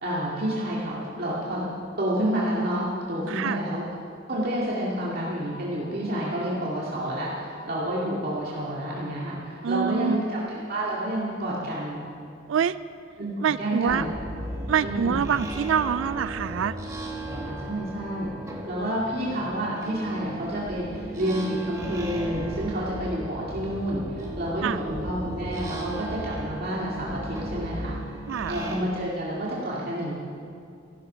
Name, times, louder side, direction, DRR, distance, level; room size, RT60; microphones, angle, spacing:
voice 1, 0.0-1.7 2.0-3.8 4.3-10.2 10.5-12.0 13.2-13.3 13.6-14.1 14.8-15.2 17.4-18.3 18.7-28.0 28.5-30.1, right 1 dB, 50° right, -6 dB, 2.3 m, -29 dB
voice 2, 3.3-3.6 9.6-10.2 12.5-12.8 13.4-14.1 14.7-16.8 24.6-24.8 28.3-28.5, right 8 dB, 70° right, 15 dB, 0.3 m, -25 dB
sound 1, 13.9-28.8, right 1 dB, 15° right, 1.9 m, -36 dB
14.5 x 13.0 x 5.7 m, 2.4 s
head